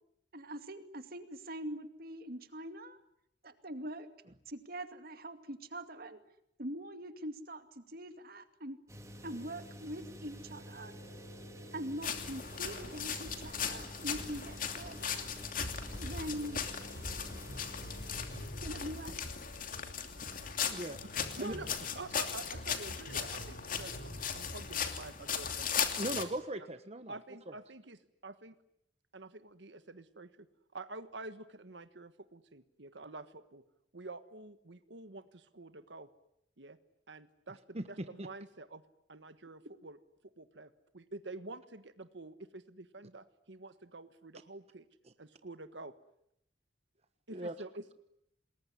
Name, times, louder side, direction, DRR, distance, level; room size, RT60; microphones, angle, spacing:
voice 1, 0.3-3.0 3.4-4.1 4.5-6.2 6.6-8.8 9.2-10.9 11.7-15.3 16.0-16.6 18.6-19.2, right 1 dB, 55° right, 9 dB, 2.3 m, -43 dB
sound 1, 8.9-18.5, equal, 15° right, 3.1 m, -49 dB
sound 2, 10.8-25.1 25.4-25.7, equal, 80° left, 4.9 m, -50 dB
sound 3, 12.0-26.2, left 7 dB, 50° left, 2.8 m, -38 dB
voice 2, 20.7-21.0 21.4-21.5 26.0-27.2 27.5-27.6 37.7-37.8 38.2-38.3 47.3-47.5, right 1 dB, 35° right, 9 dB, 1.2 m, -38 dB
voice 3, 21.4-25.9 27.1-28.5 29.1-30.5 30.7-33.6 33.9-36.1 36.6-36.8 37.1-38.8 39.1-40.0 40.4-44.8 45.2-45.9 47.3-47.9, right 2 dB, 80° right, 11 dB, 1.5 m, -48 dB
28.0 x 21.0 x 9.9 m, 0.77 s
head